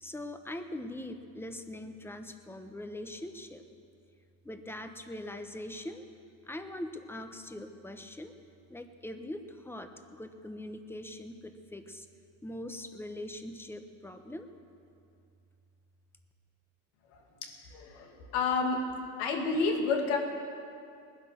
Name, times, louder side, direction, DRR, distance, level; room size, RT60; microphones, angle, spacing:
voice 1, 0.0-3.6 4.4-6.0 6.4-8.3 8.7-12.1 12.4-14.5, left 1 dB, 5° left, 7 dB, 1.1 m, -42 dB
voice 2, 17.1-18.8 19.2-20.2, left 4 dB, 85° left, 2 dB, 2.5 m, -30 dB
19.5 x 10.5 x 7.0 m, 2.4 s
cardioid pair, 110°, 37 cm